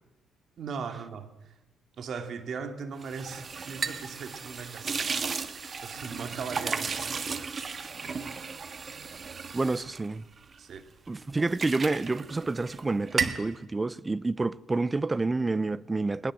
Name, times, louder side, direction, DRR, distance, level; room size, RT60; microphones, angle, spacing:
voice 1, 0.6-1.5 2.0-5.0 5.8-6.9 10.6-10.8, right 5 dB, 60° right, 2.4 m, -38 dB
sound 1, 3.0-10.8 11.1-12.8 13.1-13.5, right 5 dB, 40° right, 1.6 m, -34 dB
voice 2, 9.5-10.2 11.1-16.3, right 3 dB, 20° right, 0.7 m, -29 dB
20.5 x 20.5 x 7.7 m
cardioid pair, 90°, 0 cm